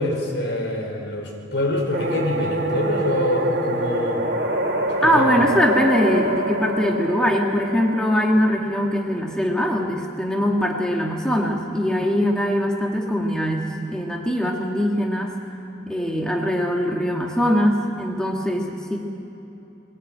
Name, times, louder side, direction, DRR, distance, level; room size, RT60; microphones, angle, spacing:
voice 1, 0.0-4.2 5.0-5.4, left 1 dB, 75° left, 2 dB, 4.7 m, -25 dB
sound 1, 1.9-8.9, right 1 dB, 55° right, 3.6 m, -26 dB
voice 2, 5.0-15.4 15.9-19.0, equal, 5° left, 0 dB, 1.7 m, -22 dB
22.0 x 17.0 x 9.0 m, 3.0 s
head